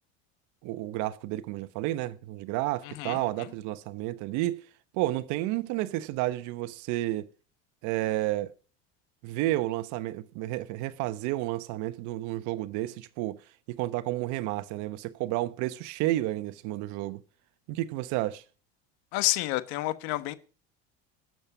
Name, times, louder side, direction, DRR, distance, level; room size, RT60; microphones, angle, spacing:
voice 1, 0.6-4.6 4.9-7.3 7.8-8.5 9.2-13.4 13.7-17.2 17.7-18.4, right 16 dB, 70° right, 1.0 m, -31 dB
voice 2, 2.8-3.2 19.1-20.3, left 17 dB, 75° left, 1.3 m, -29 dB
12.0 x 7.6 x 7.1 m
supercardioid pair, 105°, 31 cm